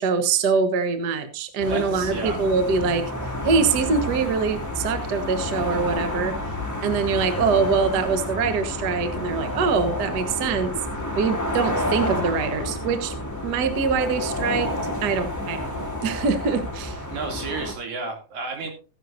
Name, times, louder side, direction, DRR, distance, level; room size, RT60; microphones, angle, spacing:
voice 1, 0.0-3.1 3.4-6.3 6.8-10.7 11.2-13.1 13.4-15.7 16.0-17.0, right 5 dB, 70° right, 9 dB, 0.9 m, -24 dB
sound 1, 1.6-17.7, left 1 dB, 5° left, 1.6 m, -30 dB
voice 2, 1.7-2.5 17.1-18.7, right 3 dB, 90° right, 2 dB, 4.4 m, -32 dB
16.0 x 10.0 x 2.6 m, 0.33 s
omnidirectional pair, 3.8 m